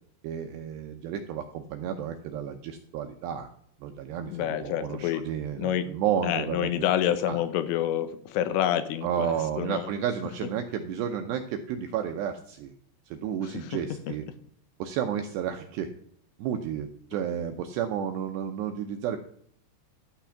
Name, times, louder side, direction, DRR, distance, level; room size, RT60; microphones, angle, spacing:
voice 1, 0.2-3.5 3.8-6.7 7.3-7.4 9.0-12.7 13.1-14.2 14.8-15.9 16.4-19.2, right 9 dB, 80° right, 5 dB, 2.5 m, -32 dB
voice 2, 4.3-5.2 5.6-5.9 6.2-9.9 13.4-13.8, left 11 dB, 80° left, 11 dB, 3.4 m, -28 dB
12.5 x 5.9 x 7.0 m, 0.66 s
omnidirectional pair, 5.8 m